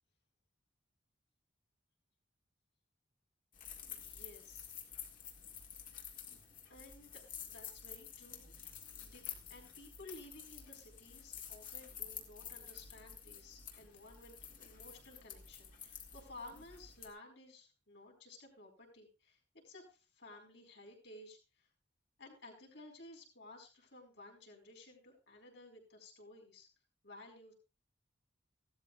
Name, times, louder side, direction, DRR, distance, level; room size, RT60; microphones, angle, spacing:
sound 1, 3.5-17.1, left 8 dB, 45° left, 2.1 m, -50 dB
voice 1, 3.9-4.7 5.2-5.4 6.7-8.5 9.0-9.2 9.5-21.7 22.2-26.7 27.0-27.5, left 2 dB, 65° left, 0 dB, 4.7 m, -55 dB
16.5 x 12.5 x 2.4 m, 0.32 s
head